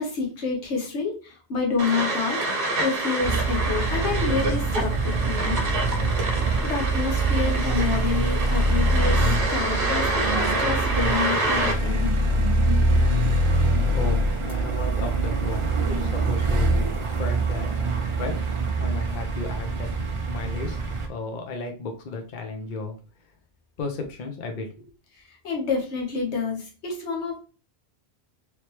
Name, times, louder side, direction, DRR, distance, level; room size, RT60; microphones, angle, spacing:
voice 1, 0.0-2.4 2.8-5.6 5.9-6.1 6.6-12.1 25.1-27.4, left 5 dB, 85° left, -1 dB, 1.3 m, -28 dB
sound 1, 1.8-11.7, right 2 dB, 55° right, 1.1 m, -27 dB
sound 2, 3.2-21.1, right 2 dB, 40° right, 0.5 m, -24 dB
voice 2, 13.6-17.7 18.2-18.5 18.8-23.0 23.8-24.9, left 3 dB, 50° left, 4 dB, 0.8 m, -34 dB
3.2 x 3.1 x 3.0 m, 0.35 s
omnidirectional pair, 1.1 m